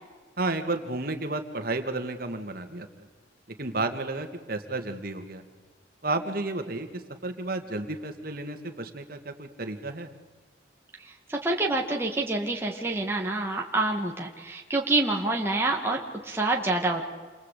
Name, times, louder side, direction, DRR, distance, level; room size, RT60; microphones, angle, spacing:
voice 1, 0.4-2.9 3.6-5.4 6.0-6.9 7.2-10.1, right 2 dB, 50° right, 6 dB, 2.5 m, -32 dB
voice 2, 11.3-17.0, right 2 dB, 15° right, 0 dB, 2.1 m, -27 dB
28.5 x 23.5 x 8.6 m, 1.4 s
head